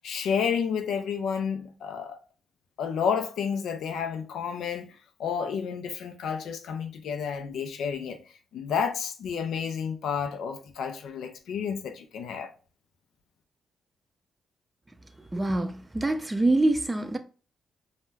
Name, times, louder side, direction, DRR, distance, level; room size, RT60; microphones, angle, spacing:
voice 1, 0.0-2.2 2.8-4.9 5.2-8.2 8.5-12.5, left 7 dB, 75° left, 0.4 m, -30 dB
voice 2, 15.3-17.2, right 2 dB, 20° right, 0.4 m, -25 dB
2.2 x 2.1 x 3.2 m
supercardioid pair, 55°, 0 cm